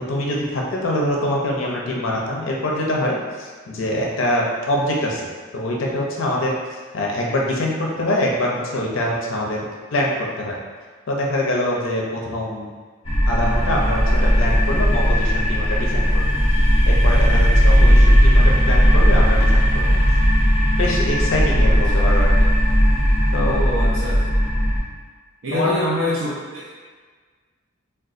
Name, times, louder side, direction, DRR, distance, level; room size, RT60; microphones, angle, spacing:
voice 1, 0.1-5.3 5.5-6.5 6.9-9.6 9.9-10.1 10.4-10.6 11.1-12.7 13.3-16.2 16.9-20.0 20.8-22.5 23.3-23.5 25.5-25.8, left 1 dB, 70° left, -2 dB, 0.5 m, -24 dB
sound 1, 13.1-24.8, equal, 25° left, 0.6 m, -16 dB
voice 2, 23.4-24.2 25.4-26.7, left 1 dB, 70° right, -8 dB, 0.5 m, -26 dB
3.7 x 2.2 x 2.4 m, 1.5 s
head